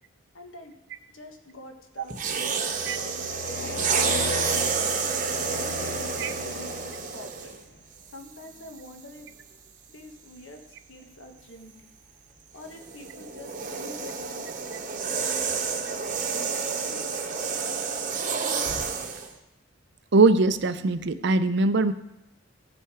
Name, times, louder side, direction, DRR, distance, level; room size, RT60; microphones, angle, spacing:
voice 1, 0.3-0.7 1.1-5.0 5.6-7.5 8.1-9.3 9.9-10.6 10.9-11.9 12.5-14.5 14.9-15.6 16.1-17.1, left 1 dB, 70° left, 4 dB, 1.4 m, -46 dB
sound 1, 2.1-7.6 8.4-8.7 12.6-19.3, right 5 dB, 40° right, 0.9 m, -29 dB
sound 2, 2.7-7.4, left 4 dB, 45° left, 0.4 m, -35 dB
voice 2, 20.1-21.9, right 3 dB, 55° right, 12 dB, 0.5 m, -21 dB
15.0 x 5.5 x 4.9 m, 0.91 s
head